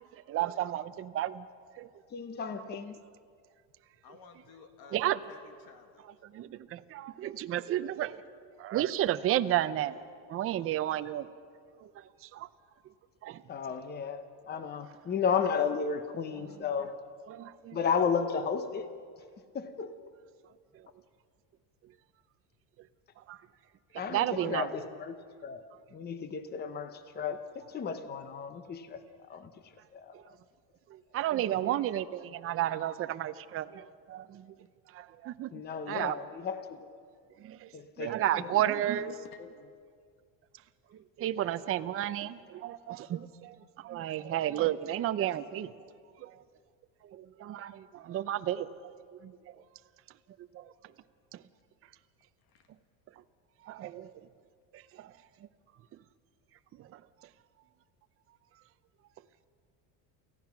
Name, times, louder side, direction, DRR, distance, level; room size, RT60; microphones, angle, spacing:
voice 1, 0.3-1.5 1.7-1.9 2.6-2.7 4.9-5.2 6.2-8.2 8.6-10.0 10.3-11.3 11.8-12.5 13.2-13.4 14.6-14.7 17.3-17.8 20.7-20.9 23.2-23.4 24.0-24.7 30.1-30.3 30.9-34.5 34.9-35.5 35.9-36.2 37.4-39.1 40.9-45.7 46.2-46.4 47.0-48.9 49.2-49.6 50.5-50.7 51.3-51.4 53.6-54.3 54.7-55.1 56.7-57.3, right 12 dB, 35° right, 11 dB, 0.6 m, -33 dB
voice 2, 2.1-3.0 13.5-16.9 17.7-18.9 19.5-19.9 24.0-25.6 25.9-30.1 35.5-37.0 37.7-38.7 39.4-39.5, left 6 dB, 25° left, 10 dB, 0.8 m, -34 dB
voice 3, 4.0-5.0 5.3-6.1 39.2-39.7 52.4-52.7, left 6 dB, 60° left, 6 dB, 1.7 m, -54 dB
28.5 x 15.5 x 5.9 m, 2.1 s
cardioid pair, 145°, 42 cm